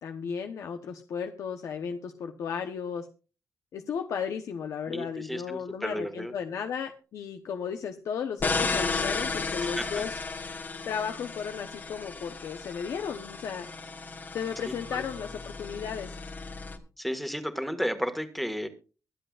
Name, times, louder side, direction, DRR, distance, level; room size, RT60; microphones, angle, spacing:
voice 1, 0.0-3.1 3.7-10.2 10.8-13.7 14.3-16.2, left 7 dB, 75° left, 6 dB, 1.0 m, -34 dB
voice 2, 4.9-6.3 9.6-10.0 14.9-15.0 17.0-18.7, equal, ahead, 8 dB, 1.8 m, -33 dB
sound 1, 8.4-16.8, left 4 dB, 35° left, 1.5 m, -34 dB
23.5 x 7.8 x 2.5 m, 0.34 s
cardioid pair, 115°, 5 cm